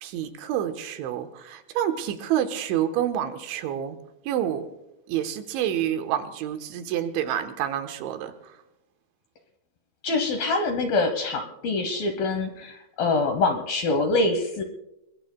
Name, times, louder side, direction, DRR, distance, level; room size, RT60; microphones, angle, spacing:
voice 1, 0.0-4.0 4.3-4.7 5.1-8.3, right 10 dB, 80° right, 7 dB, 3.3 m, -28 dB
voice 2, 10.0-14.6, left 3 dB, 70° left, 6 dB, 2.3 m, -25 dB
29.0 x 21.0 x 2.2 m, 0.90 s
omnidirectional pair, 5.6 m